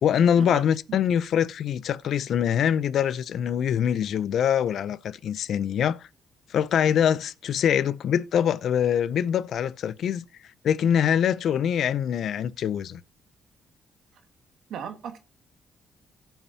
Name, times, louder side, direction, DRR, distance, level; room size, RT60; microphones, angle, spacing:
voice 1, 0.0-6.1 6.5-10.2 10.6-13.0, left 9 dB, 70° left, 0.5 m, -24 dB
voice 2, 14.7-15.2, right 8 dB, 75° right, 1.3 m, -36 dB
16.5 x 5.7 x 2.8 m
cardioid pair, 90°, 0 cm